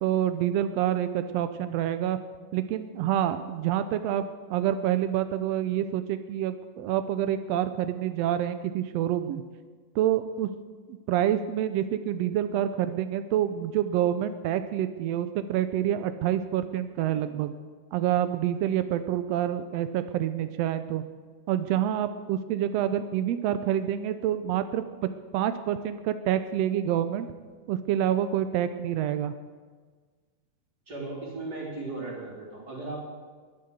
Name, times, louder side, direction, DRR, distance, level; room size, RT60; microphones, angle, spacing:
voice 1, 0.0-2.2 2.5-9.4 9.9-10.5 11.1-17.5 17.9-21.0 21.5-24.8 25.3-27.3 27.7-29.3, right 11 dB, 85° right, 10 dB, 1.4 m, -27 dB
voice 2, 30.9-33.0, right 2 dB, 30° right, -3 dB, 4.4 m, -36 dB
21.0 x 7.6 x 8.1 m, 1.5 s
omnidirectional pair, 3.7 m